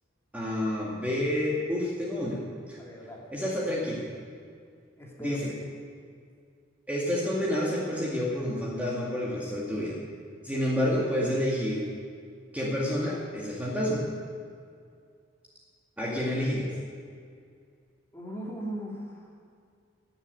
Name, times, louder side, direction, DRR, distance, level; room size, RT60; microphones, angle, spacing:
voice 1, 0.3-2.4 2.7-2.8 3.3-4.0 5.2-5.5 6.9-10.0 10.4-11.9 12.5-14.0 16.0-16.7, left 1 dB, 10° right, -6 dB, 2.1 m, -29 dB
voice 2, 2.8-3.2 5.0-5.4 5.6-5.8 18.1-19.3, right 1 dB, 15° left, -3 dB, 2.8 m, -38 dB
17.0 x 7.3 x 9.6 m, 2.2 s
head